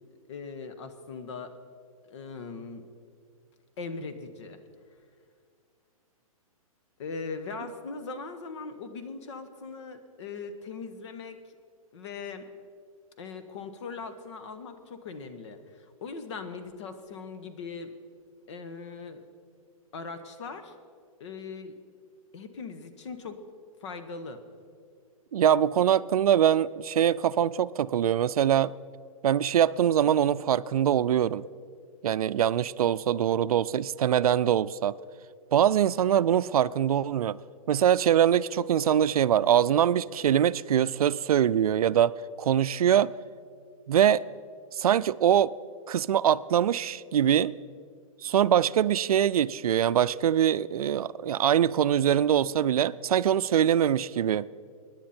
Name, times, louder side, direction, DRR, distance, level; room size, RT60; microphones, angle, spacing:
voice 1, 0.3-1.5 2.1-2.8 3.8-4.6 7.0-11.4 11.9-12.4 13.2-17.9 18.5-19.2 19.9-20.7 21.2-21.7 22.3-23.4 23.8-24.4, left 4 dB, 50° left, 1.4 m, -40 dB
voice 2, 25.3-28.7 29.2-31.5 32.0-34.9 35.5-37.4 37.7-43.1 43.9-44.2 44.8-45.5 45.9-47.6 48.2-54.5, right 10 dB, 85° right, 0.4 m, -23 dB
24.0 x 10.5 x 4.4 m
hypercardioid pair, 155°, 18 cm